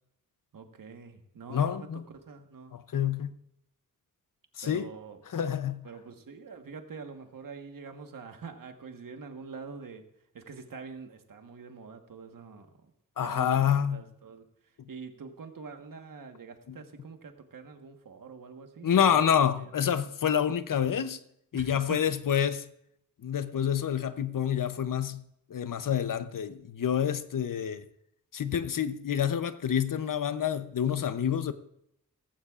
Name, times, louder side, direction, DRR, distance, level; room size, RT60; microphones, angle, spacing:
voice 1, 0.5-2.7 4.6-5.2 5.8-10.0 10.3-12.9 13.2-14.4 14.9-19.7 21.5-22.0, right 5 dB, 70° right, 1.4 m, -45 dB
voice 2, 1.5-2.0 2.7-3.3 4.6-4.9 5.3-5.8 13.2-14.0 16.7-16.8 18.8-21.2 21.5-22.7 23.2-25.2 25.5-27.8 28.3-31.5, left 8 dB, 70° left, 0.7 m, -28 dB
17.5 x 15.0 x 2.5 m
wide cardioid pair, 150°, 34 cm